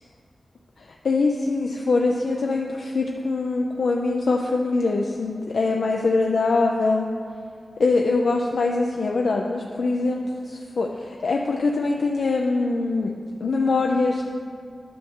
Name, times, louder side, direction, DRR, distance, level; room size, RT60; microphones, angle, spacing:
voice 1, 0.8-7.1 7.8-13.1 13.4-14.2, left 3 dB, 75° left, 1 dB, 0.5 m, -23 dB
10.5 x 6.3 x 3.7 m, 2.2 s
wide cardioid pair, 110°, 0 cm